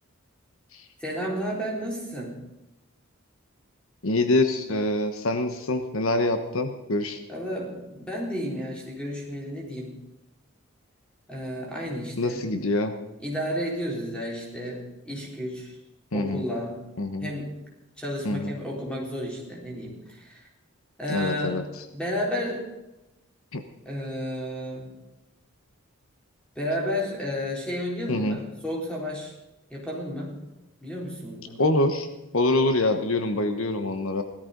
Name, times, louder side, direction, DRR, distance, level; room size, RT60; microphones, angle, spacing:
voice 1, 1.0-2.5 7.3-10.1 11.3-12.5 13.2-15.8 16.1-16.9 17.2-17.6 18.0-20.5 21.0-22.7 23.9-24.9 26.6-29.3 29.7-30.4 30.8-31.6, equal, 5° left, -3 dB, 4.2 m, -32 dB
voice 2, 4.0-7.2 12.2-12.9 16.1-16.4 17.0-17.3 18.2-18.5 21.1-21.6 23.5-23.6 28.1-28.4 31.6-32.1 32.3-34.2, left 2 dB, 70° left, 8 dB, 1.2 m, -25 dB
17.0 x 13.5 x 5.3 m, 0.98 s
head